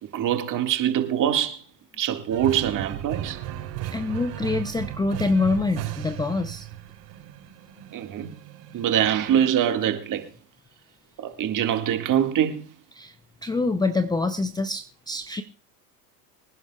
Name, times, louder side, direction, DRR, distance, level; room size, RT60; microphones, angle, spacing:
voice 1, 0.1-1.6 2.0-3.4 7.9-8.3 8.7-10.3 11.2-12.7, right 10 dB, 40° right, 1.9 m, -24 dB
sound 1, 2.3-9.7, right 13 dB, 75° right, 6.0 m, -36 dB
voice 2, 3.9-6.7 13.0-13.1 13.4-15.4, left 3 dB, 10° left, 0.5 m, -25 dB
25.0 x 10.5 x 2.3 m
hypercardioid pair, 100°, 48 cm